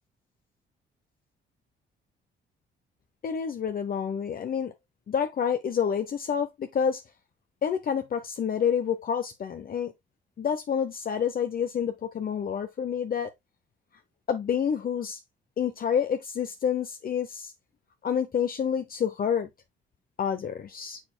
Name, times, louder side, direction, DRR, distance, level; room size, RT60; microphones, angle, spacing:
voice 1, 3.2-4.7 5.1-7.0 7.6-9.9 10.4-13.3 14.3-15.2 15.6-17.5 18.0-19.5 20.2-21.0, left 7 dB, 45° left, 0.8 m, -28 dB
6.8 x 6.3 x 2.3 m
cardioid pair, 90°, 20 cm